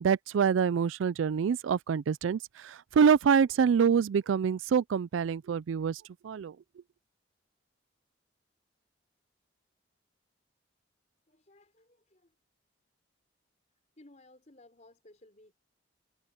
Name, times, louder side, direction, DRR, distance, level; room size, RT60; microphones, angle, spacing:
voice 1, 0.0-6.5, right 6 dB, 85° right, 0.4 m, -26 dB
voice 2, 11.3-12.3 14.0-15.5, left 1 dB, 40° left, 4.3 m, -58 dB
head